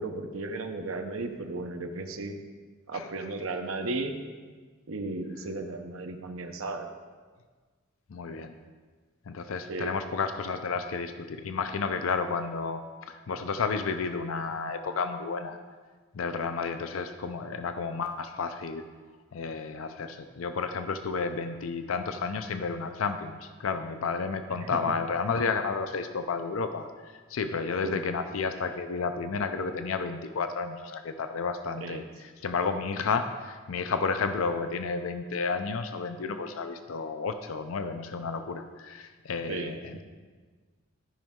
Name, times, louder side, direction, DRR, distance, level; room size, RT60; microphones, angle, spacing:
voice 1, 0.0-2.4 2.9-4.1 4.9-6.9 9.7-9.9 24.5-24.8 27.8-28.0 31.8-32.0 39.5-39.7, right 2 dB, 85° right, 5 dB, 0.8 m, -35 dB
voice 2, 8.1-8.6 9.3-15.6 16.1-18.9 19.3-40.0, left 4 dB, 80° left, 8 dB, 0.5 m, -31 dB
13.5 x 5.2 x 3.6 m, 1.5 s
head